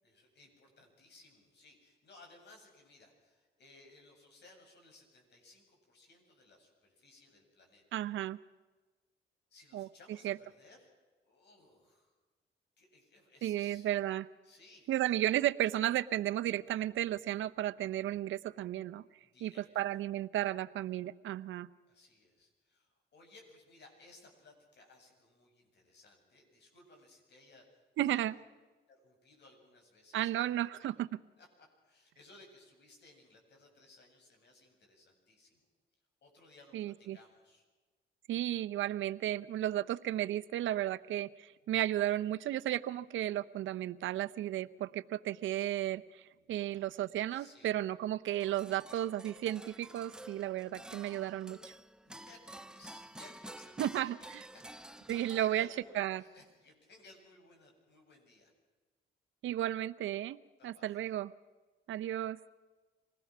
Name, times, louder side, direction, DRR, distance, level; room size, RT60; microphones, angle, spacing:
voice 1, 0.0-8.0 9.5-10.9 11.2-12.1 12.8-13.9 14.4-15.2 19.3-19.8 21.9-28.2 28.9-31.0 31.4-31.5 31.8-35.6 36.2-37.6 46.6-46.9 47.3-47.7 52.0-58.5 60.6-61.0, left 2 dB, 60° left, 2 dB, 8.0 m, -60 dB
voice 2, 7.9-8.4 9.7-9.9 10.2-10.4 13.4-14.3 14.9-19.0 19.4-21.7 28.0-28.4 30.1-31.1 36.7-37.2 38.3-46.2 46.5-51.6 53.8-54.4 55.1-55.7 56.0-56.2 59.4-60.4 60.6-61.3 61.9-62.4, right 13 dB, 75° right, 12 dB, 0.9 m, -34 dB
sound 1, 48.3-56.0, right 1 dB, 5° right, 0.6 m, -51 dB
26.0 x 19.5 x 6.1 m, 1.3 s
cardioid pair, 90°, 20 cm